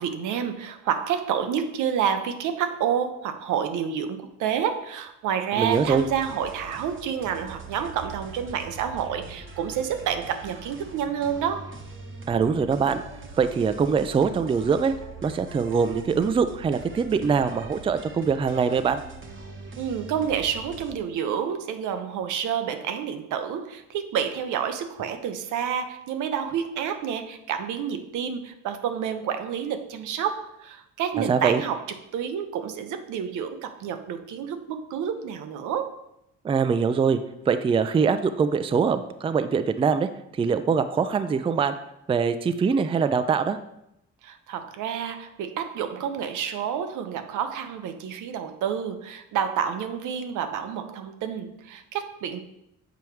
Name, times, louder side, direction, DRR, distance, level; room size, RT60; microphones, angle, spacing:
voice 1, 0.0-11.7 19.8-31.8 32.1-36.0 44.2-52.4, right 8 dB, 80° right, 8 dB, 0.6 m, -29 dB
voice 2, 5.6-6.1 12.3-13.0 13.4-14.9 15.2-19.0 31.3-31.6 36.4-37.2 37.5-40.1 40.4-41.7 42.1-43.6, right 6 dB, 20° right, 10 dB, 0.3 m, -23 dB
sound 1, 5.6-20.9, right 3 dB, 40° right, 0.9 m, -43 dB
7.0 x 4.5 x 3.2 m, 0.82 s
cardioid pair, 90°, 30 cm